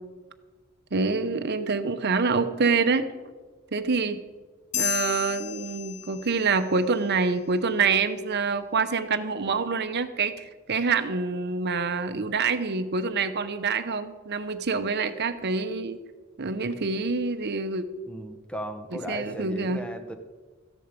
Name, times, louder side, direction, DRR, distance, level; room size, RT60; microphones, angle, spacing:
voice 1, 0.9-3.1 3.7-4.2 4.8-16.0 16.4-17.9 18.9-19.8, right 4 dB, 55° right, 9 dB, 0.8 m, -26 dB
sound 1, 4.7-6.6, left 10 dB, 35° left, 0.6 m, -32 dB
voice 2, 18.1-20.2, equal, 5° left, 7 dB, 0.9 m, -36 dB
14.0 x 10.0 x 5.2 m, 1.3 s
head